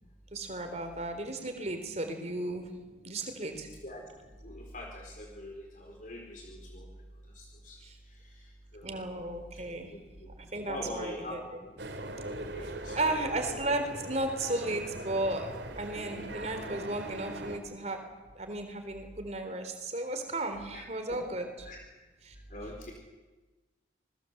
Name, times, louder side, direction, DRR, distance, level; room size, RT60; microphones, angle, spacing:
voice 1, 0.3-2.7 3.0-3.7 7.8-7.9 8.8-9.9 10.5-11.4 12.9-18.0 18.4-21.7 22.2-22.3, right 2 dB, 35° right, 6 dB, 3.8 m, -34 dB
voice 2, 4.4-6.9 7.4-7.8 8.7-8.8 9.8-10.3 10.6-11.4 12.5-13.2 20.7-20.8 21.1-21.2 21.6-21.8 22.5-22.9, left 1 dB, 45° left, 1 dB, 4.3 m, -43 dB
sound 1, 11.8-17.6, right 1 dB, 70° right, 3.1 m, -41 dB
27.0 x 20.5 x 8.0 m, 1.2 s
head